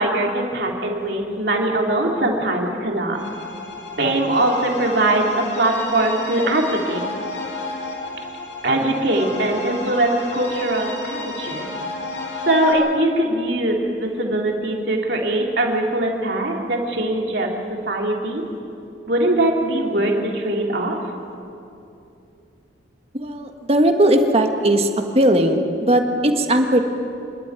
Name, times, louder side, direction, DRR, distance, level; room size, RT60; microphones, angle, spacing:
voice 1, 0.0-3.2 4.0-7.0 8.6-11.7 12.5-17.5 17.9-18.4 19.1-21.0, right 1 dB, 60° right, 0 dB, 2.8 m, -21 dB
sound 1, 3.1-12.7, left 2 dB, 80° left, 5.0 m, -32 dB
voice 2, 23.1-24.9 25.1-26.8, right 1 dB, 35° right, 5 dB, 1.5 m, -18 dB
27.0 x 12.5 x 9.4 m, 2.7 s
head